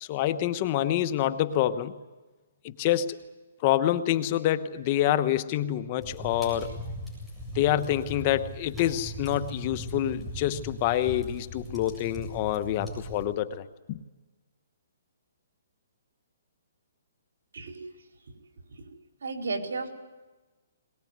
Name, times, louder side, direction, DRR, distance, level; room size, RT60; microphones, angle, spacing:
voice 1, 0.0-1.9 2.6-3.2 3.6-6.7 7.5-14.0, left 12 dB, 30° left, 10 dB, 1.1 m, -27 dB
sound 1, 6.0-13.2, right 1 dB, 5° right, 7.8 m, -39 dB
voice 2, 19.2-19.9, right 3 dB, 80° right, 4 dB, 4.6 m, -34 dB
22.0 x 20.5 x 9.6 m, 1.2 s
hypercardioid pair, 160°, 0 cm